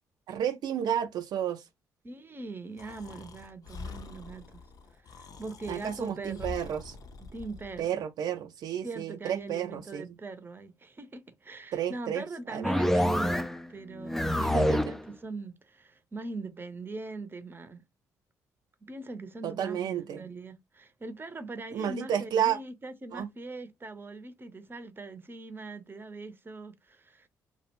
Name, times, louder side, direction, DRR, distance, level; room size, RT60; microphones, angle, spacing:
voice 1, 0.3-1.6 5.7-7.0 7.8-10.1 11.7-12.2 12.5-12.8 14.4-14.9 19.4-20.3 21.7-22.6 23.1-23.3, right 9 dB, 65° right, 0.4 m, -31 dB
voice 2, 2.0-4.6 5.0-6.5 7.2-8.0 8.8-17.8 18.9-27.3, right 3 dB, 30° right, 0.7 m, -41 dB
Breathing, 2.8-7.9, left 4 dB, 55° left, 0.5 m, -45 dB
sound 1, 12.6-13.7 14.0-15.0, left 1 dB, 5° left, 0.3 m, -26 dB
2.3 x 2.1 x 2.9 m
hypercardioid pair, 50°, 8 cm